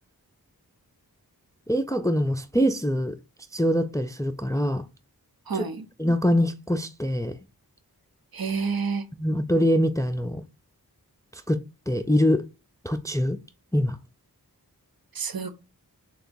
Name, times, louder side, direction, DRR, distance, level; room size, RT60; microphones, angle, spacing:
voice 1, 1.7-3.2 3.5-4.8 5.5-5.6 6.0-7.3 9.1-10.4 11.3-12.4 12.8-13.4 13.7-14.0, equal, 10° left, 0.3 m, -24 dB
voice 2, 5.5-5.9 8.3-9.0 15.1-15.5, right 5 dB, 70° right, 0.7 m, -29 dB
6.6 x 2.3 x 2.6 m
wide cardioid pair, 75°, 37 cm